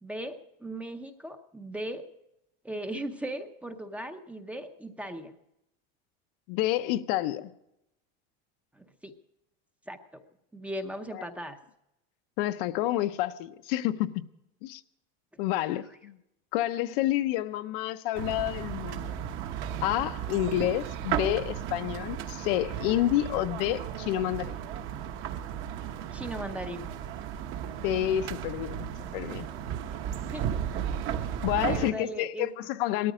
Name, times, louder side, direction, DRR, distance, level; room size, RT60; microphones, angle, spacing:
voice 1, 0.0-2.0 2.6-5.3 8.7-9.1 9.9-10.2 10.5-11.6 26.1-26.9 30.1-30.6 31.5-32.5, right 1 dB, 5° right, 0.7 m, -38 dB
voice 2, 6.5-7.5 11.1-11.3 12.4-14.2 14.6-14.8 15.4-16.2 16.5-19.2 19.8-24.6 27.8-29.5 31.4-33.1, left 14 dB, 60° left, 0.8 m, -29 dB
sound 1, 18.2-31.9, right 9 dB, 40° right, 1.1 m, -35 dB
18.5 x 13.0 x 5.0 m
cardioid pair, 180°, 31 cm